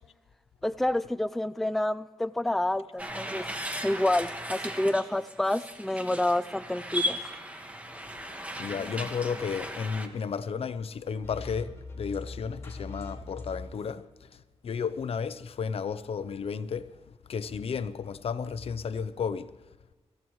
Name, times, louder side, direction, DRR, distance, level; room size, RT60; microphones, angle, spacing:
voice 1, 0.6-3.4 3.8-7.2, left 1 dB, ahead, 0.4 m, -28 dB
sound 1, 3.0-10.1, equal, 15° right, 1.6 m, -36 dB
voice 2, 8.6-14.1 14.6-16.9 17.3-19.6, left 6 dB, 65° left, 0.7 m, -33 dB
sound 2, 11.2-13.9, left 3 dB, 25° left, 5.1 m, -41 dB
25.0 x 15.5 x 3.2 m
wide cardioid pair, 110°, 11 cm